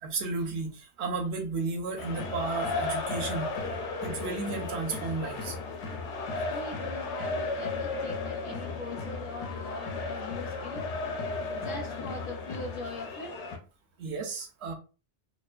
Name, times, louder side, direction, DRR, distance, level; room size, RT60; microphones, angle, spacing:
voice 1, 0.0-5.6 14.0-14.7, right 3 dB, 75° right, 0.9 m, -33 dB
sound 1, 2.0-13.6, left 3 dB, 85° left, 0.9 m, -34 dB
voice 2, 6.5-10.9 11.5-13.5, left 2 dB, 60° left, 0.6 m, -41 dB
2.4 x 2.3 x 2.2 m
omnidirectional pair, 1.2 m